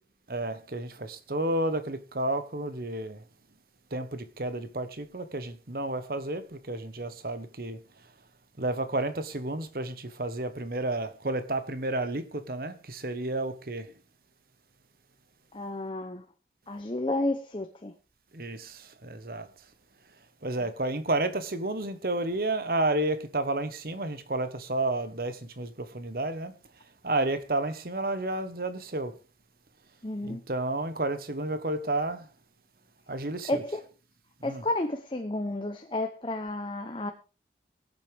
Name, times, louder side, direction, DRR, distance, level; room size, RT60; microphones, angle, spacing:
voice 1, 0.3-3.2 3.9-6.4 6.7-7.8 8.6-13.8 18.4-18.6 19.1-19.4 20.4-26.5 27.0-29.1 30.3-32.2 33.1-33.6 34.4-34.6, right 2 dB, 55° right, 1.2 m, -31 dB
voice 2, 15.5-16.3 16.7-17.9 20.6-20.7 30.0-30.4 33.5-33.8 34.4-37.1, left 2 dB, 30° left, 0.9 m, -31 dB
23.0 x 8.0 x 3.5 m
head